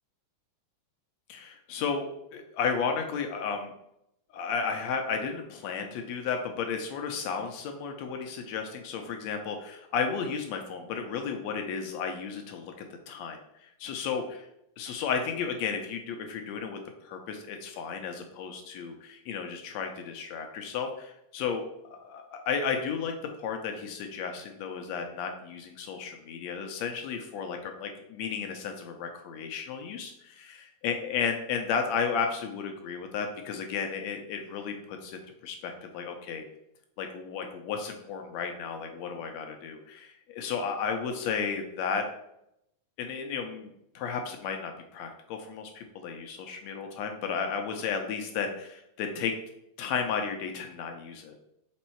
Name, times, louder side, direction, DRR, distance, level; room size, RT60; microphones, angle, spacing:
voice 1, 1.3-3.7 4.3-12.7 13.1-14.2 14.8-23.1 23.4-36.4 37.0-42.0 43.0-49.3 49.8-51.4, left 6 dB, 80° left, 4 dB, 1.6 m, -33 dB
5.4 x 4.1 x 4.4 m, 0.80 s
omnidirectional pair, 3.7 m